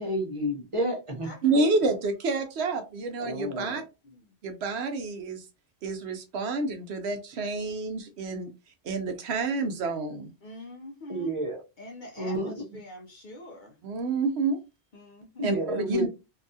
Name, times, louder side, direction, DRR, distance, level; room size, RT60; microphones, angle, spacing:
voice 1, 0.0-1.3 3.2-3.8 11.1-11.6 12.2-12.8 15.4-16.0, equal, 30° right, 0.8 m, -30 dB
voice 2, 1.4-3.8 4.4-5.5 5.8-10.3 13.8-14.6 15.4-16.1, right 3 dB, 75° right, 0.9 m, -29 dB
voice 3, 10.4-11.4 11.8-13.8 14.9-15.5, left 1 dB, 55° left, 0.6 m, -44 dB
2.7 x 2.3 x 2.6 m
omnidirectional pair, 1.1 m